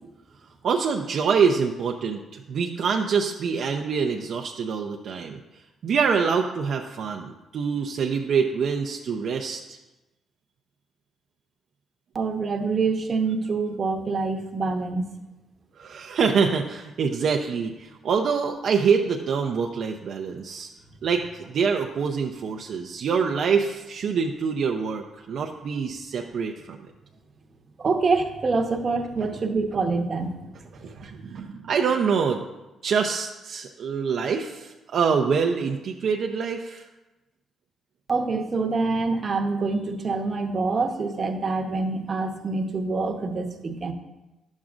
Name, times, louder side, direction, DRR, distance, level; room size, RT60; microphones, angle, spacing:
voice 1, 0.6-5.4 5.8-9.8 15.8-20.7 21.0-26.8 30.8-32.4 32.8-36.8, right 6 dB, 65° right, 2 dB, 0.5 m, -25 dB
voice 2, 12.1-15.0 27.8-30.4 38.1-43.9, right 3 dB, 40° right, 4 dB, 0.9 m, -26 dB
10.5 x 7.3 x 2.5 m, 1.0 s
cardioid pair, 90°, 0 cm